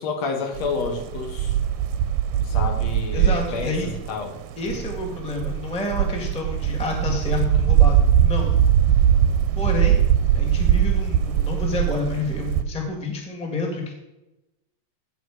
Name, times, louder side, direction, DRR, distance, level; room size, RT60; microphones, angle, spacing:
voice 1, 0.0-1.5 2.4-4.4, left 4 dB, 60° left, 4 dB, 2.4 m, -29 dB
sound 1, 0.6-12.6, right 10 dB, 85° right, 2.4 m, -21 dB
voice 2, 3.1-3.9 4.6-8.5 9.6-13.9, left 2 dB, 5° left, 0 dB, 1.2 m, -29 dB
16.0 x 6.1 x 4.9 m, 0.97 s
omnidirectional pair, 3.9 m